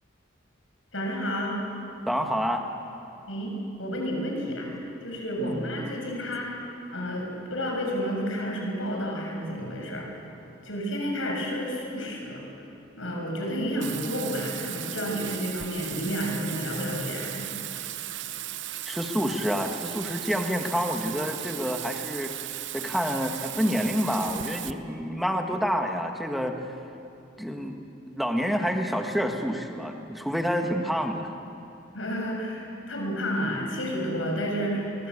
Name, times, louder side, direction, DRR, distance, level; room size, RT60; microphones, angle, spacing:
voice 1, 0.9-1.6 3.3-4.7 5.0-6.6 6.9-10.2 10.6-12.5 13.0-17.5 31.9-35.1, equal, 85° left, 0 dB, 6.6 m, -31 dB
voice 2, 2.1-2.6 5.4-5.6 18.9-22.3 22.7-26.6 27.4-27.8 28.1-31.3, equal, ahead, 3 dB, 1.7 m, -28 dB
Bathtub (filling or washing), 13.8-24.7, right 13 dB, 65° right, 0.8 m, -36 dB
24.5 x 21.5 x 8.5 m, 2.8 s
head